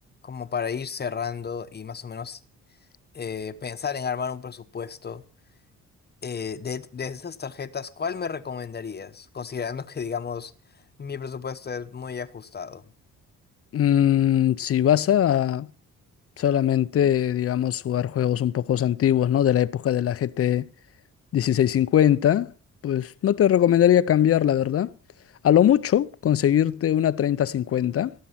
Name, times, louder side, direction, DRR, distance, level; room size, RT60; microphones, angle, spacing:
voice 1, 0.2-2.4 3.1-5.2 6.2-10.5 11.0-12.8, left 6 dB, 35° left, 1.0 m, -33 dB
voice 2, 13.7-15.7 16.4-20.7 21.3-22.5 22.8-24.9 25.4-28.1, left 10 dB, 50° left, 0.6 m, -21 dB
18.5 x 7.5 x 5.7 m
cardioid pair, 90°, 30 cm